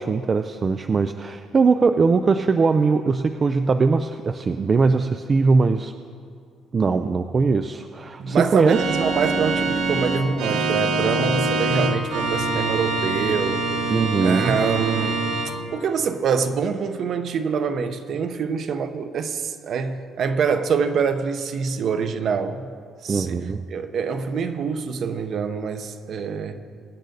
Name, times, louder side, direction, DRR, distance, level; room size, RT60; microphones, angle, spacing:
voice 1, 0.0-5.9 6.7-8.8 13.9-14.5 23.1-23.6, right 4 dB, 25° right, 0.3 m, -20 dB
voice 2, 8.2-13.6 14.2-15.3 15.7-22.7 23.0-26.6, right 6 dB, 40° right, 0.8 m, -25 dB
Organ, 8.7-15.5, right 3 dB, 90° right, 1.6 m, -24 dB
23.0 x 10.5 x 4.0 m
cardioid pair, 175°, 0 cm